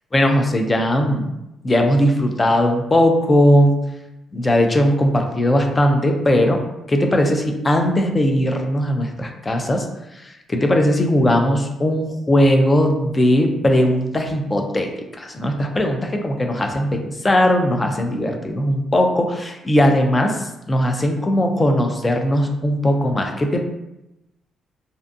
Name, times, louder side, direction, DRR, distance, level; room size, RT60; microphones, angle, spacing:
voice 1, 0.1-1.3 1.6-3.7 4.3-6.6 6.9-9.9 10.2-23.7, left 1 dB, 25° left, 4 dB, 0.4 m, -18 dB
2.5 x 2.3 x 2.5 m, 0.92 s
cardioid pair, 90°, 0 cm